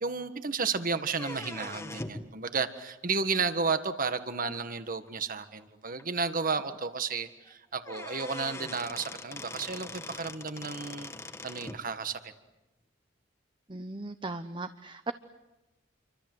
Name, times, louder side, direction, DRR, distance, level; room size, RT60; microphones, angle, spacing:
voice 1, 0.0-11.1 11.4-12.3, right 4 dB, 45° right, 10 dB, 1.7 m, -32 dB
sound 1, 1.1-2.3 4.0-4.1 5.1-5.2 5.6-5.7 6.0-6.1 7.5-7.6 7.8-11.8, left 2 dB, 15° left, 1.5 m, -42 dB
voice 2, 13.7-15.1, right 2 dB, 25° right, 10 dB, 0.9 m, -37 dB
28.5 x 25.0 x 7.9 m, 1.0 s
head